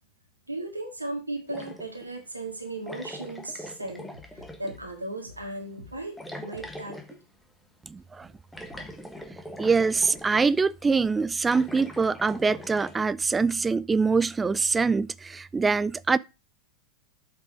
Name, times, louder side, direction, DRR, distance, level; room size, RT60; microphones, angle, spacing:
voice 1, 0.5-7.0, right 2 dB, 85° right, 1.8 m, -36 dB
sound 1, 1.5-2.1 2.9-4.8 6.2-7.2 8.5-10.6 11.4-13.0, left 1 dB, 5° left, 1.4 m, -42 dB
voice 2, 7.9-8.3 9.6-16.2, right 4 dB, 15° right, 0.4 m, -24 dB
8.0 x 5.4 x 4.9 m
figure-of-eight pair, 90°, 0 cm